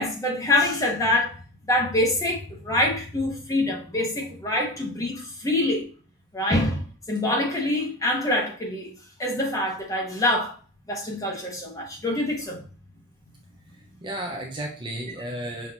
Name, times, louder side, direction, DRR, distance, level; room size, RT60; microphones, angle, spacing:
voice 1, 0.0-1.4 1.7-5.8 6.3-6.8 7.1-8.9 9.2-10.6 10.9-12.6, left 1 dB, 15° left, 1.2 m, -25 dB
voice 2, 13.5-15.7, right 1 dB, 20° right, 0.5 m, -34 dB
5.8 x 2.8 x 2.8 m
head